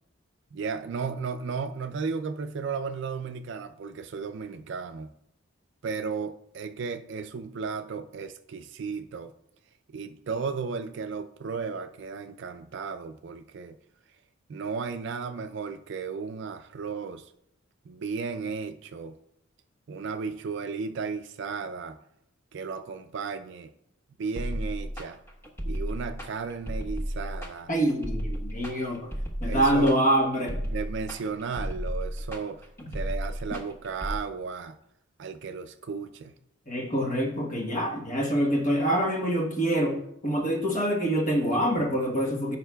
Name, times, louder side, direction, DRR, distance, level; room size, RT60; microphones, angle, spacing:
voice 1, 0.5-5.1 5.8-9.3 9.9-13.7 14.5-17.3 17.9-19.1 19.9-22.0 22.5-23.7 24.2-25.2 25.7-27.7 29.5-29.9 30.6-32.6 32.9-34.8 35.2-36.3, right 5 dB, 60° right, 8 dB, 0.4 m, -34 dB
sound 1, 24.4-34.2, equal, 10° left, 1.1 m, -33 dB
voice 2, 27.7-29.1 29.4-30.6 36.7-42.6, right 1 dB, 40° left, 0 dB, 1.1 m, -25 dB
14.0 x 5.6 x 2.3 m, 0.77 s
head